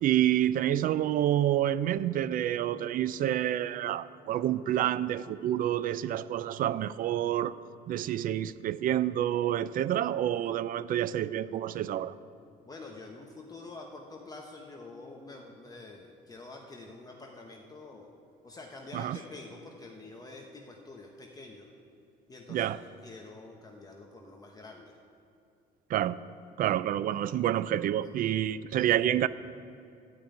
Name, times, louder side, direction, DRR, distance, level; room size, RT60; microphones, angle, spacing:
voice 1, 0.0-7.6 7.9-12.1 18.9-19.2 22.5-22.8 25.9-26.2 26.6-29.3, right 11 dB, 55° right, 16 dB, 0.4 m, -28 dB
voice 2, 12.6-18.1 18.4-21.7 22.3-22.7 23.0-24.9 28.2-28.3, left 3 dB, 20° left, 0 dB, 1.0 m, -47 dB
12.5 x 5.3 x 9.0 m, 2.5 s
cardioid pair, 110°, 17 cm